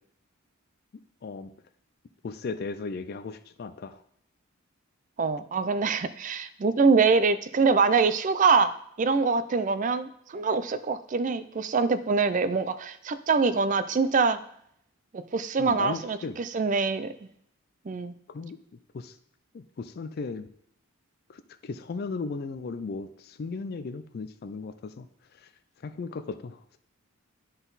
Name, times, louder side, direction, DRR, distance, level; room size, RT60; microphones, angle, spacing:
voice 1, 2.2-4.0 15.6-16.4 18.3-18.6 18.9-19.1 19.5-20.5 21.3-25.1 25.4-25.5 25.8-26.8, left 4 dB, 45° left, 10 dB, 0.3 m, -36 dB
voice 2, 5.2-8.7 9.0-14.4 15.1-17.1 17.9-18.1, right 4 dB, 35° right, 14 dB, 0.4 m, -24 dB
11.0 x 4.0 x 4.0 m, 0.72 s
head